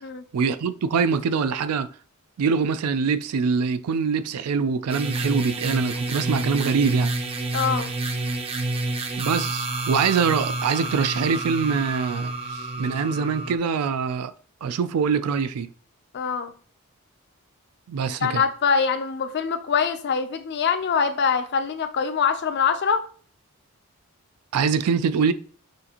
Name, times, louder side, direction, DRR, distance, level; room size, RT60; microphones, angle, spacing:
voice 1, 0.3-1.9 2.4-7.1 9.2-14.3 14.6-15.7 17.9-18.4 24.5-25.3, right 5 dB, 85° right, 0.4 m, -24 dB
sound 1, 4.9-13.6, right 2 dB, 25° right, 0.5 m, -29 dB
voice 2, 7.5-7.9 16.1-16.5 18.2-23.0, left 6 dB, 50° left, 0.5 m, -24 dB
6.2 x 2.6 x 2.8 m
head